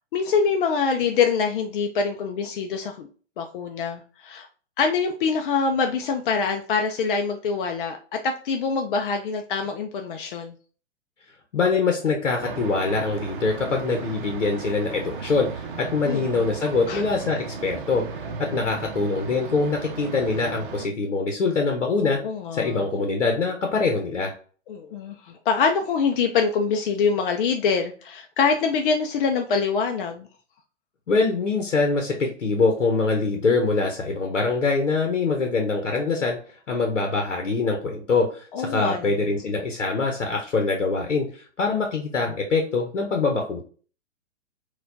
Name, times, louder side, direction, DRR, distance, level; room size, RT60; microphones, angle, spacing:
voice 1, 0.1-3.1 3.4-4.5 4.8-8.0 8.2-10.5 16.1-16.5 16.9-17.0 22.0-22.9 24.7-30.3 38.5-39.2, left 5 dB, 50° left, 5 dB, 0.4 m, -24 dB
voice 2, 11.5-18.1 18.4-22.2 22.5-24.3 31.1-36.4 36.7-43.6, left 4 dB, 85° left, 3 dB, 0.8 m, -24 dB
sound 1, 12.4-20.9, right 5 dB, 45° right, 0.6 m, -36 dB
4.1 x 2.3 x 2.7 m, 0.40 s
figure-of-eight pair, 115°, 36 cm